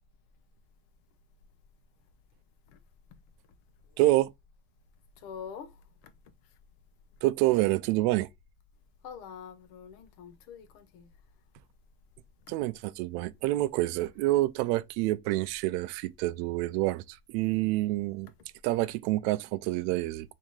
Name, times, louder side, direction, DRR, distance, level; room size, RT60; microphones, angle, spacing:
voice 1, 4.0-4.3 7.2-8.3 12.5-18.3 18.6-20.3, right 17 dB, 70° right, 0.5 m, -27 dB
voice 2, 5.2-5.7 9.0-11.1, left 7 dB, 75° left, 0.9 m, -44 dB
3.5 x 2.8 x 4.6 m
cardioid pair, 155°, 32 cm